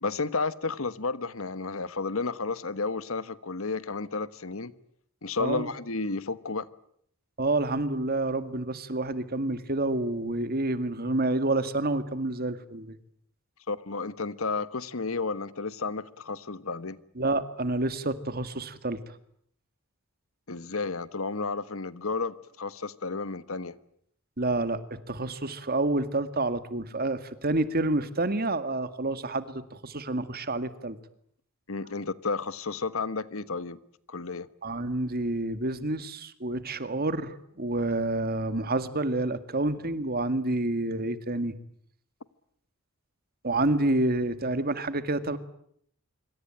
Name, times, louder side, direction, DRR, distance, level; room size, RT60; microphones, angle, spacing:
voice 1, 0.0-4.7 5.2-6.7 13.7-17.0 20.5-23.7 31.7-33.8 34.1-34.5, left 4 dB, 70° left, 15 dB, 1.3 m, -32 dB
voice 2, 5.4-5.7 7.4-13.0 17.2-19.0 24.4-31.0 34.6-41.6 43.4-45.4, right 2 dB, 45° right, 12 dB, 2.1 m, -28 dB
26.0 x 25.0 x 9.0 m, 0.68 s
head